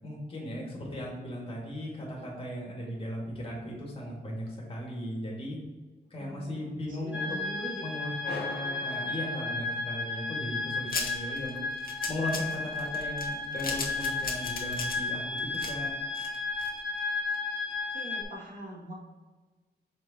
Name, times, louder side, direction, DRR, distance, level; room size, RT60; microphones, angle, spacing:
voice 1, 0.0-5.6 6.1-7.4 7.8-11.6 12.1-15.9, left 1 dB, 35° left, -3 dB, 2.1 m, -37 dB
voice 2, 6.1-6.7 7.0-7.8 8.2-8.4 17.9-18.9, right 1 dB, 55° right, -3 dB, 1.9 m, -42 dB
sound 1, 7.1-18.2, left 3 dB, 5° right, 1.7 m, -34 dB
sound 2, 8.2-10.0, left 2 dB, 75° left, 1.7 m, -41 dB
sound 3, 10.9-17.0 17.3-17.4 17.7-17.8, left 4 dB, 60° left, 1.3 m, -37 dB
6.5 x 4.5 x 4.2 m, 1.3 s
wide cardioid pair, 165°, 17 cm